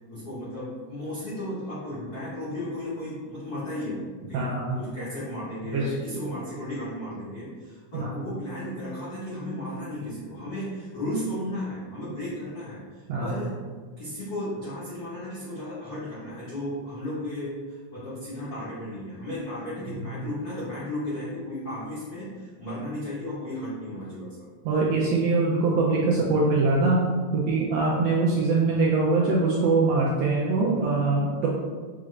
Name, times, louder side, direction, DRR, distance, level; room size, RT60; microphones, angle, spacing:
voice 1, 0.1-4.0 4.3-13.6 14.0-24.4, left 1 dB, 75° left, -11 dB, 0.8 m, -34 dB
voice 2, 4.3-4.8 5.7-5.9 7.9-8.1 13.1-13.4 19.9-20.1 24.6-27.0 27.3-31.5, right 3 dB, 80° right, -4 dB, 1.5 m, -23 dB
5.8 x 2.4 x 3.2 m, 1.5 s
omnidirectional pair, 3.5 m